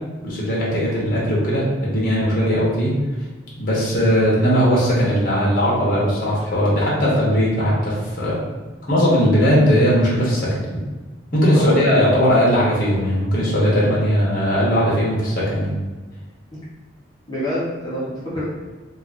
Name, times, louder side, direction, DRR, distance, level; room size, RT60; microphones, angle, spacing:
voice 1, 0.2-2.9 3.6-8.4 8.9-10.5 11.3-15.7, equal, 45° left, -6 dB, 1.2 m, -18 dB
voice 2, 17.3-18.4, equal, 20° left, -9 dB, 1.0 m, -26 dB
3.1 x 2.5 x 3.8 m, 1.3 s
head